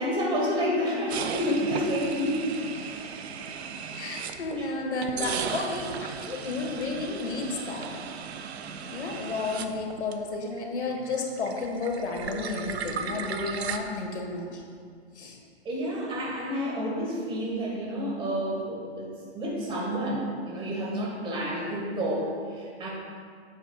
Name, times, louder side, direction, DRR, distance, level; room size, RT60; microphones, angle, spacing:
voice 1, 0.0-2.5 4.6-4.7 5.2-5.5 15.7-22.9, equal, 15° right, -4 dB, 1.8 m, -29 dB
sound 1, 1.1-4.6 5.0-10.6 10.8-13.8, right 7 dB, 70° right, 0.7 m, -36 dB
voice 2, 3.9-7.9 8.9-14.6 15.2-15.4, left 3 dB, 85° left, 1 dB, 1.8 m, -32 dB
10.0 x 7.7 x 2.5 m, 2.1 s
hypercardioid pair, 145°, 33 cm